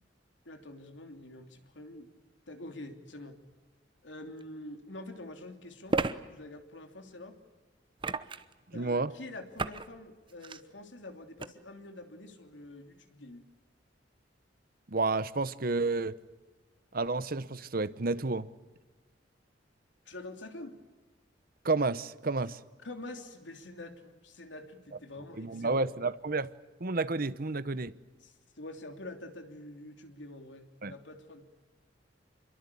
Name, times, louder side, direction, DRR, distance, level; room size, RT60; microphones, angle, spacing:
voice 1, 0.4-2.1 2.5-3.4 4.0-7.4 8.7-13.4 20.1-20.8 22.8-25.9 28.2-31.5, left 2 dB, 80° left, 3.1 m, -46 dB
sound 1, 4.4-4.5 5.9-6.1 8.0-8.5 9.6-9.9 10.3-10.6 11.4-11.5, right 3 dB, 25° right, 0.9 m, -32 dB
voice 2, 8.7-9.1 14.9-16.1 16.9-18.5 21.6-22.6 25.4-26.5 26.8-27.9 30.8-30.9, right 3 dB, 50° right, 0.9 m, -30 dB
27.0 x 23.0 x 8.5 m
head